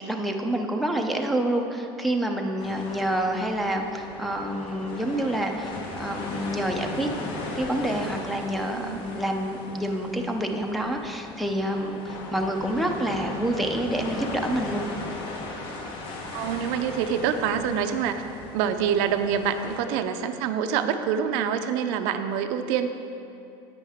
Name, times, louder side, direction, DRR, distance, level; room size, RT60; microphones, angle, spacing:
voice 1, 0.1-7.1 7.6-14.9, right 1 dB, ahead, 1 dB, 0.5 m, -28 dB
sound 1, 2.6-19.8, left 2 dB, 45° left, 1.2 m, -37 dB
voice 2, 8.7-9.0 16.3-18.2 18.5-22.9, right 8 dB, 65° right, 8 dB, 0.5 m, -26 dB
10.0 x 8.4 x 3.6 m, 2.8 s
cardioid pair, 150°, 12 cm